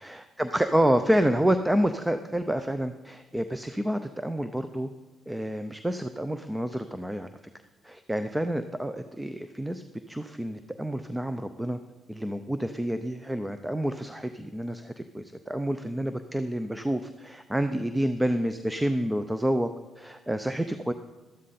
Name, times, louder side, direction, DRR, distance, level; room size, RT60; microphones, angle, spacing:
voice 1, 0.0-4.9 5.3-7.3 7.8-11.8 12.1-19.7 20.0-20.9, right 1 dB, 10° right, 9 dB, 0.6 m, -28 dB
13.0 x 11.0 x 4.2 m, 1.2 s
cardioid pair, 90°, 0 cm